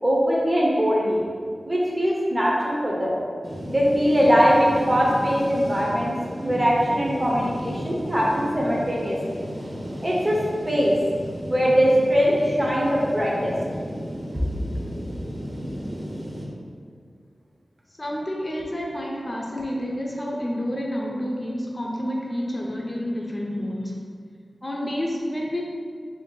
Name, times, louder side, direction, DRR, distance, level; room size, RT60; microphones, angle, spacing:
voice 1, 0.0-1.2 1.7-3.2 3.7-9.4 10.0-10.4 10.7-11.0 11.5-13.5, equal, 20° right, -4 dB, 0.7 m, -21 dB
sound 1, 3.4-16.4, equal, 45° right, 0.9 m, -34 dB
voice 2, 18.0-24.0 24.6-25.6, equal, 30° left, -2 dB, 0.6 m, -29 dB
3.4 x 2.6 x 3.8 m, 2.1 s
cardioid pair, 55°, 0 cm